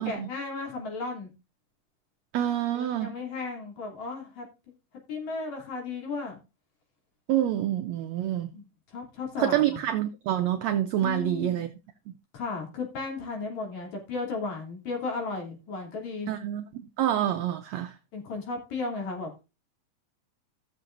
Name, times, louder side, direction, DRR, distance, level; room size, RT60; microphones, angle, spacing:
voice 1, 0.0-1.3 2.7-4.5 5.1-6.4 8.5-9.8 11.0-11.6 12.3-16.3 18.1-19.3, left 3 dB, 55° left, 4.1 m, -35 dB
voice 2, 2.3-3.1 7.3-8.5 9.4-11.7 16.3-18.0, right 11 dB, 80° right, 1.5 m, -27 dB
16.5 x 6.7 x 2.6 m
omnidirectional pair, 3.9 m